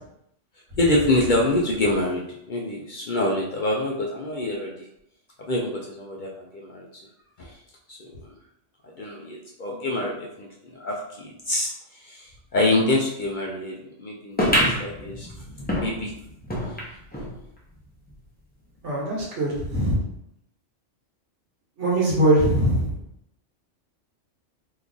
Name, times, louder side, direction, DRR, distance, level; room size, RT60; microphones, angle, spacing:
voice 1, 0.8-4.9 5.4-7.0 7.4-7.6 7.9-8.1 9.0-15.3 15.8-16.1, left 1 dB, 60° left, -2 dB, 0.5 m, -26 dB
sound 1, 14.4-17.3 17.8-17.9 18.1-18.2 19.0-19.1, equal, 10° left, 0.5 m, -26 dB
voice 2, 18.8-20.0 21.8-22.9, right 1 dB, 70° right, -4 dB, 1.4 m, -21 dB
3.0 x 2.3 x 3.7 m, 0.79 s
omnidirectional pair, 1.3 m